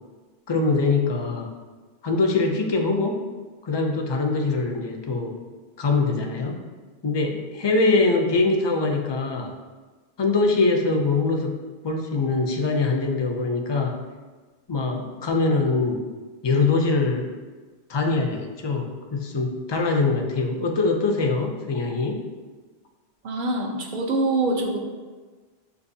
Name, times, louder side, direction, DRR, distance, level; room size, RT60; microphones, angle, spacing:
voice 1, 0.5-1.5 2.0-3.2 3.6-5.4 5.8-6.6 7.0-9.5 10.2-14.0 14.7-16.0 16.4-17.3 17.9-22.2, left 3 dB, 45° left, 2 dB, 0.3 m, -23 dB
voice 2, 23.2-24.8, right 2 dB, 55° right, 1 dB, 0.7 m, -24 dB
6.6 x 2.6 x 2.6 m, 1.3 s
omnidirectional pair, 1.1 m